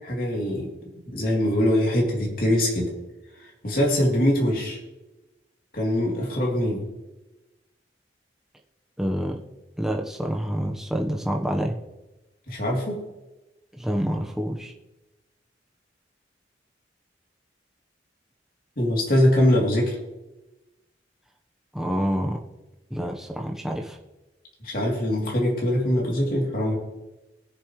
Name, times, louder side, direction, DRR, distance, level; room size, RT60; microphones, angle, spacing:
voice 1, 0.0-0.7 1.1-2.9 3.6-4.8 5.7-6.8 12.5-13.0 18.8-20.0 24.6-26.8, left 1 dB, 50° left, -2 dB, 3.2 m, -22 dB
voice 2, 9.0-9.4 9.8-11.8 13.7-14.7 21.7-22.4 22.9-24.0, equal, ahead, 1 dB, 1.0 m, -27 dB
20.0 x 7.3 x 3.2 m, 1.0 s
head